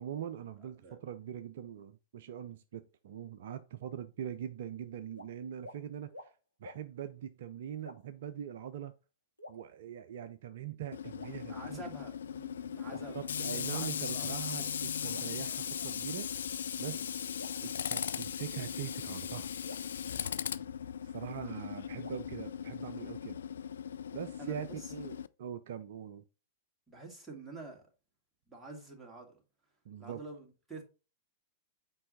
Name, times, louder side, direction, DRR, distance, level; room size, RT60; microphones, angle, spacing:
voice 1, 0.0-6.3 6.6-8.9 9.5-11.8 13.1-16.3 16.8-17.1 17.6-19.5 21.0-23.4 24.1-24.7 24.9-26.2 29.9-30.2, right 10 dB, 55° right, 0.5 m, -42 dB
sound 1, 5.1-5.3 5.6-5.8 6.1-6.3 6.6-6.8 7.8-8.3 9.4-10.2 11.2-11.9 12.9-13.9 15.1-16.2 17.4-18.6 19.6-21.1 22.0-23.2, left 1 dB, 90° left, 1.5 m, -54 dB
Tools, 10.9-25.3, left 8 dB, 65° left, 0.3 m, -38 dB
voice 2, 11.5-14.3 16.9-17.1 20.2-20.7 24.4-24.9 26.9-27.8 28.5-29.4 30.0-30.8, right 2 dB, 10° right, 2.4 m, -48 dB
7.6 x 4.7 x 4.1 m
figure-of-eight pair, 100°, 0 cm